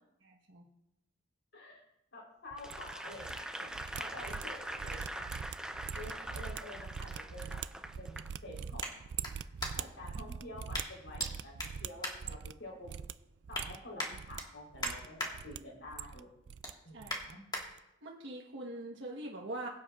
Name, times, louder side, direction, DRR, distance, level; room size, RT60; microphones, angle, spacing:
voice 1, 0.2-0.6 16.9-17.4 18.0-19.7, right 1 dB, 90° right, -2 dB, 1.3 m, -43 dB
voice 2, 2.1-5.3 5.9-7.6 8.0-8.9 9.7-12.9 13.5-16.3 16.8-17.4, left 1 dB, 80° left, -1 dB, 3.9 m, -49 dB
sound 1, 2.5-3.4 3.7-12.6 12.8-13.1 13.4-14.4 14.7-15.6 15.8-16.7 17.0-17.3 17.6-17.8, right 7 dB, 65° right, 0.3 m, -43 dB
Applause / Crowd, 2.6-8.3 8.8-9.0, right 1 dB, 5° right, 0.5 m, -43 dB
sound 2, 8.8-10.1 10.7-11.3 11.6-12.9 13.2-13.7 14.0-15.3 15.7-16.0 16.3-17.6 18.2-18.3, left 1 dB, 20° left, 1.7 m, -41 dB
22.0 x 7.8 x 2.5 m, 0.86 s
head